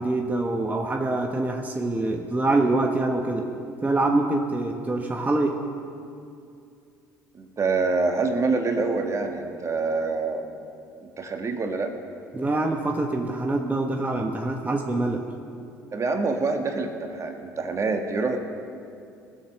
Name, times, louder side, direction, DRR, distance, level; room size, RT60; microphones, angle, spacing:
voice 1, 0.0-3.5 3.8-5.6 12.3-15.2, right 2 dB, 20° right, 2 dB, 1.2 m, -25 dB
voice 2, 7.3-10.6 11.0-11.9 15.9-18.4, right 3 dB, 35° right, 5 dB, 1.5 m, -26 dB
19.5 x 7.2 x 6.5 m, 2.5 s
hypercardioid pair, 60°, 9 cm